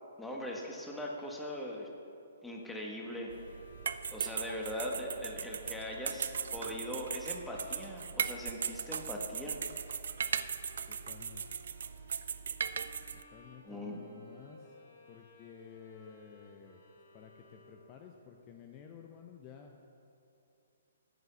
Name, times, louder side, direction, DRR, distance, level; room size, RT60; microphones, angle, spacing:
voice 1, 0.2-1.9 2.4-3.3 4.1-9.6 13.6-14.0, left 1 dB, 5° left, -1 dB, 1.5 m, -40 dB
sound 1, 3.0-18.1, left 2 dB, 60° left, 2.5 m, -59 dB
sound 2, 3.3-13.2, right 7 dB, 65° right, 0.5 m, -38 dB
voice 2, 10.9-11.4 13.3-14.8 15.1-16.8 17.1-19.7, left 7 dB, 30° left, 3 dB, 0.8 m, -53 dB
9.2 x 8.3 x 6.9 m, 2.7 s
hypercardioid pair, 135°, 0 cm